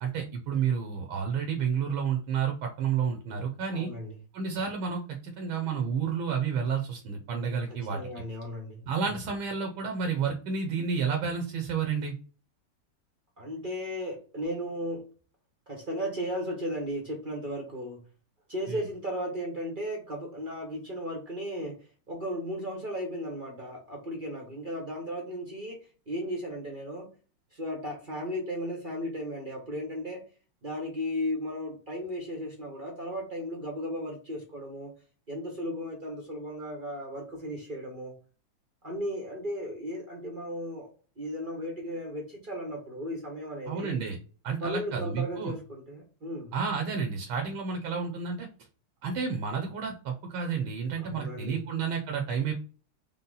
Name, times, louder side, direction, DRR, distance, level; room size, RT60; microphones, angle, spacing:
voice 1, 0.0-3.9 4.3-8.0 8.8-12.2 18.7-18.8 43.7-44.2 44.4-45.5 46.5-48.5 49.0-52.5, right 6 dB, 70° right, 3 dB, 1.4 m, -30 dB
voice 2, 3.7-4.1 7.7-9.1 13.4-15.0 15.7-18.0 18.5-21.7 22.1-25.8 26.1-27.1 27.5-30.2 30.6-34.9 35.3-38.1 38.8-40.9 41.2-44.0 44.6-46.5 51.0-51.7, equal, 45° right, -1 dB, 0.6 m, -35 dB
5.4 x 2.1 x 3.8 m, 0.38 s
omnidirectional pair, 2.4 m